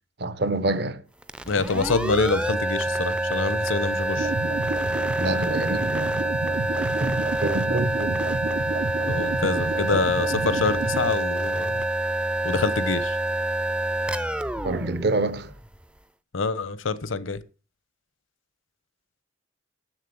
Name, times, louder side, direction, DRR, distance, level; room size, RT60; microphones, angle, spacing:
voice 1, 0.2-1.0 1.7-1.8 5.2-6.3 7.0-8.3 14.6-15.5, right 2 dB, 55° right, 0.8 m, -27 dB
sound 1, 1.2-15.8, right 1 dB, 5° right, 0.4 m, -27 dB
voice 2, 1.5-4.3 9.1-11.9 12.4-13.2 16.3-17.4, left 4 dB, 80° left, 0.8 m, -26 dB
sound 2, 4.2-11.1, right 3 dB, 85° right, 0.7 m, -31 dB
7.4 x 7.4 x 6.9 m
head